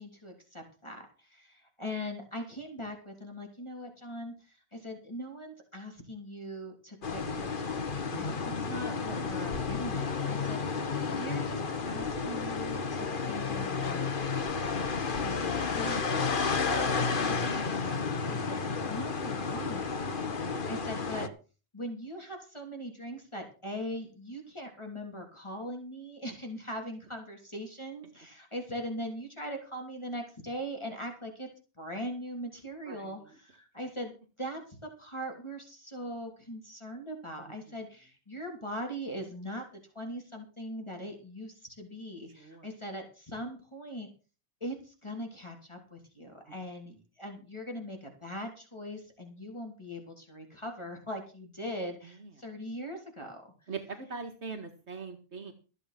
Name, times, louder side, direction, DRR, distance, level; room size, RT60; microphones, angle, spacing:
voice 1, 0.0-21.3 21.7-31.5 31.8-39.6 39.9-44.1 44.6-53.7, equal, 25° left, 2 dB, 3.2 m, -41 dB
sound 1, 7.0-21.3, left 5 dB, 50° left, 1.3 m, -32 dB
voice 2, 8.1-8.5 10.2-10.4 20.0-20.3 32.9-33.1 42.4-42.7 52.0-52.3 53.7-55.5, right 5 dB, 75° right, 6 dB, 2.0 m, -42 dB
14.5 x 8.4 x 5.9 m, 0.35 s
omnidirectional pair, 1.2 m